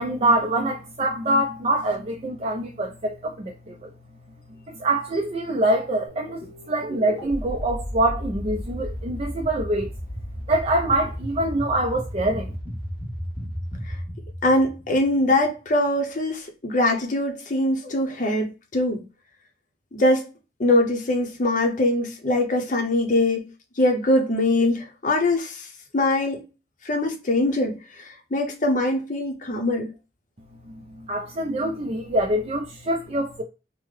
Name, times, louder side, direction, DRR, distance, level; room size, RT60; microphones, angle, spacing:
voice 1, 0.0-3.9 4.8-9.9 10.5-12.5 30.7-33.4, right 1 dB, 35° right, 0.4 m, -25 dB
sound 1, 6.1-15.4, equal, 10° right, 0.9 m, -34 dB
voice 2, 14.4-19.0 19.9-20.3 20.6-23.4 23.8-25.7 25.9-26.4 26.8-29.9, left 1 dB, 45° left, 0.6 m, -22 dB
3.7 x 2.1 x 3.1 m
head